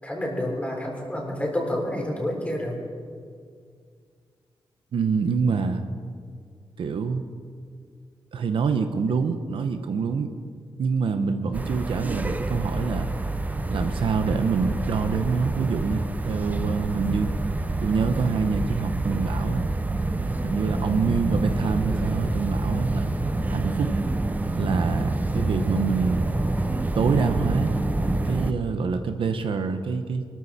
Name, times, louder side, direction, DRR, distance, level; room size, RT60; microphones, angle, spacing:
voice 1, 0.0-2.8, left 1 dB, 15° left, -1 dB, 3.7 m, -29 dB
voice 2, 4.9-5.8 6.8-7.2 8.3-10.3 10.8-13.1 13.7-17.3 17.8-19.6 20.4-23.1 23.5-23.9 24.6-26.3 26.9-27.7 28.2-30.3, right 5 dB, 75° right, 7 dB, 1.0 m, -26 dB
sound 1, 11.5-28.5, right 2 dB, 20° right, 0.7 m, -27 dB
24.0 x 13.5 x 4.3 m, 2.1 s
wide cardioid pair, 130°, 9 cm